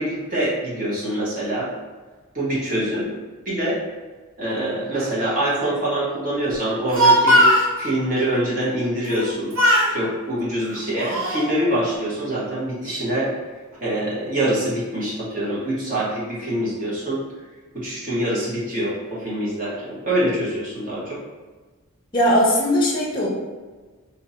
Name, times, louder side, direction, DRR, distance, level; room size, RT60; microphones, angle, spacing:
voice 1, 0.0-1.7 2.3-3.0 3.4-3.8 4.4-7.4 7.8-9.5 9.9-13.3 13.8-17.2 17.7-21.2, right 1 dB, 40° right, -7 dB, 1.2 m, -25 dB
Speech, 6.7-7.7 9.0-9.3 9.5-9.9 10.6-11.5, equal, 65° right, 0.6 m, -18 dB
voice 2, 22.1-23.3, equal, 20° left, -4 dB, 0.7 m, -19 dB
2.7 x 2.7 x 4.2 m, 1.4 s
head